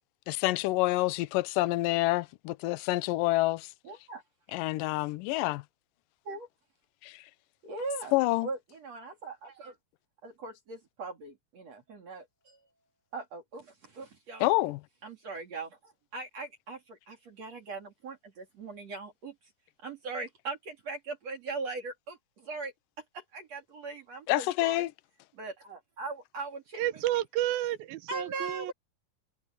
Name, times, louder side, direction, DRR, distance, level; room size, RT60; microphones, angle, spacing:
voice 1, 0.3-3.7 4.5-5.6 7.0-7.2 8.1-8.5 14.4-14.8 24.3-24.9, left 19 dB, 80° left, 2.1 m, -27 dB
voice 2, 3.8-4.2 6.3-6.5 7.6-8.1 8.4-9.8 10.2-12.6 13.1-14.4 15.0-19.4 19.8-22.7 23.1-24.8 25.3-27.0 28.1-28.7, right 3 dB, 45° right, 3.8 m, -40 dB
voice 3, 26.8-28.7, right 14 dB, 80° right, 2.7 m, -31 dB
omnidirectional pair, 4.3 m